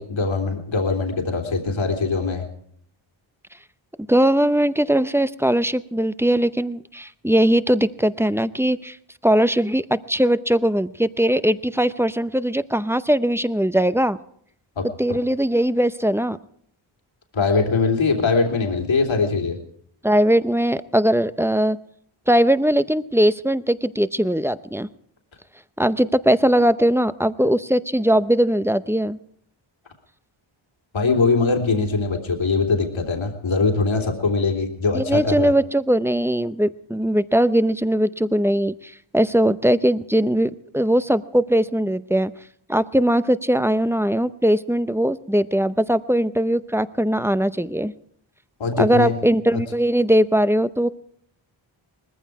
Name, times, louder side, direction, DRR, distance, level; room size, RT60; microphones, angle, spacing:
voice 1, 0.0-2.5 14.8-15.2 17.3-19.6 30.9-35.5 48.6-49.2 49.5-49.6, left 4 dB, 70° left, 2 dB, 3.1 m, -22 dB
voice 2, 4.1-9.0 9.2-14.2 15.0-16.4 20.0-21.8 22.3-24.9 25.8-29.2 34.9-42.3 42.7-47.9 48.8-50.9, right 1 dB, 5° right, 14 dB, 0.7 m, -20 dB
20.0 x 15.0 x 4.7 m, 0.67 s
cardioid pair, 75°, 49 cm